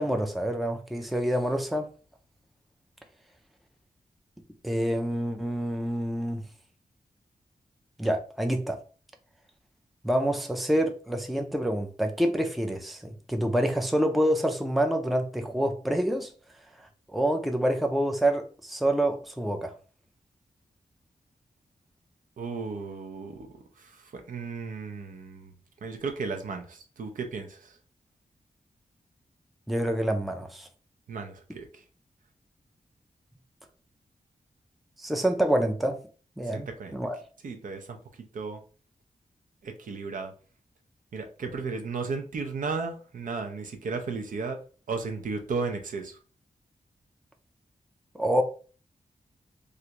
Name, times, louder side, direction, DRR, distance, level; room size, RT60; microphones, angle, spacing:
voice 1, 0.0-1.9 4.6-6.4 8.0-8.8 10.0-16.3 17.1-19.7 29.7-30.7 35.0-36.0 36.4-37.2 48.1-48.4, right 1 dB, ahead, 0.4 m, -27 dB
voice 2, 22.4-23.5 23.8-23.9 24.3-25.5 25.8-27.7 31.1-31.7 36.5-37.0 37.4-38.0 38.3-38.6 39.6-40.3 41.1-44.6 44.9-46.2, right 4 dB, 70° right, 0.6 m, -34 dB
3.2 x 2.5 x 2.9 m
wide cardioid pair, 140°, 14 cm